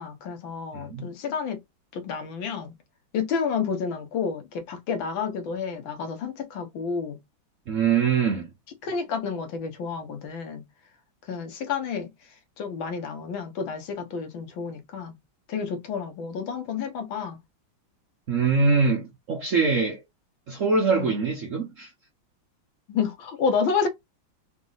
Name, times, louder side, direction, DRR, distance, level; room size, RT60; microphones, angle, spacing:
voice 1, 0.0-1.6 1.9-2.7 3.1-7.2 8.8-10.6 11.3-12.1 12.6-15.1 15.5-17.4 20.9-21.1 22.9-23.9, left 6 dB, 70° left, 1.7 m, -30 dB
voice 2, 0.7-1.1 7.7-8.5 18.3-20.0 20.5-21.9, right 5 dB, 60° right, 0.8 m, -23 dB
4.0 x 2.6 x 3.9 m
omnidirectional pair, 2.3 m